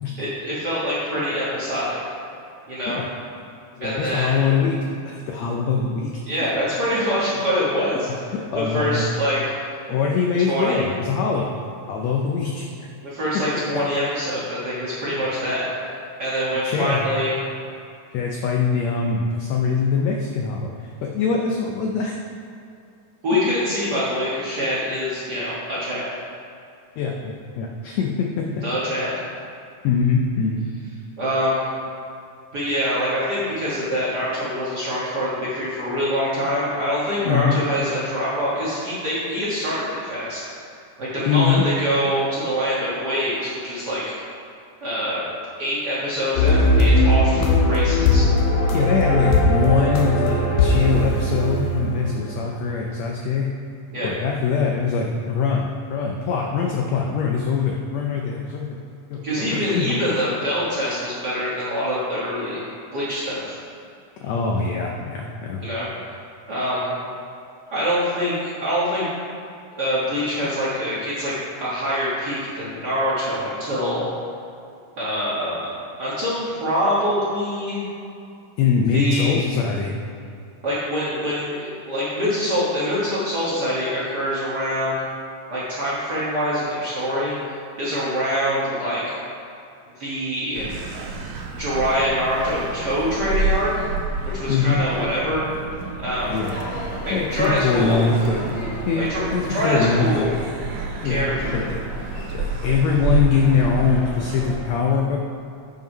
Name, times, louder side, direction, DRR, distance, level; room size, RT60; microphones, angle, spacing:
voice 1, 0.2-2.0 2.7-3.0 3.8-4.3 6.3-8.1 8.5-9.4 10.4-10.9 13.0-15.6 16.2-17.4 23.2-26.0 28.6-29.1 31.2-31.7 32.5-40.4 41.0-44.1 44.8-45.2 45.6-48.2 53.9-54.1 59.2-62.6 62.9-63.6 65.6-65.9 66.5-66.9 67.7-69.0 69.8-71.3 71.6-74.1 75.0-75.7 76.0-77.8 78.9-79.4 80.6-85.0 85.5-87.4 87.8-89.2 90.0-90.7 91.6-93.7 94.2-95.5 96.0-96.4 97.0-98.0 99.0-100.3 101.0-101.6, equal, 45° right, -9 dB, 1.4 m, -24 dB
voice 2, 3.7-6.2 8.3-9.1 9.9-11.5 11.9-12.7 16.5-17.1 18.1-22.1 27.0-28.6 29.8-30.7 37.2-37.6 41.3-41.6 47.4-47.5 48.7-53.5 54.0-58.8 59.1-60.0 64.2-65.6 78.6-79.9 94.5-94.8 96.3-96.5 97.1-98.6 98.9-99.1 99.3-100.3 101.0-101.3 101.5-101.8 102.3-105.2, left 5 dB, 85° left, 0 dB, 1.5 m, -23 dB
sound 1, 46.4-52.4, left 1 dB, 70° left, 1.8 m, -19 dB
sound 2, 90.5-104.6, right 3 dB, 85° right, 2.3 m, -29 dB
Crowd / Fireworks, 96.3-104.5, left 1 dB, 45° left, 2.4 m, -35 dB
7.6 x 5.3 x 5.3 m, 2.5 s
omnidirectional pair, 3.8 m